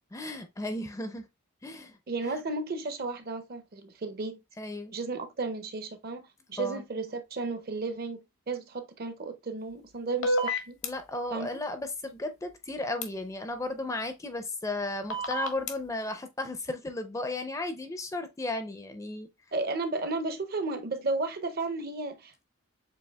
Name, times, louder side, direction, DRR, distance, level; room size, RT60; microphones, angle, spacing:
voice 1, 0.1-1.3 1.6-2.0 4.6-4.9 6.6-6.8 10.8-19.3, left 2 dB, 15° left, 0.4 m, -34 dB
voice 2, 2.1-4.4 4.9-6.2 6.5-10.8 11.3-11.6 19.5-22.4, right 3 dB, 45° right, 0.6 m, -33 dB
sound 1, 10.2-10.9 13.0-13.1 15.1-15.7, equal, 65° left, 0.7 m, -28 dB
6.9 x 2.7 x 2.2 m
head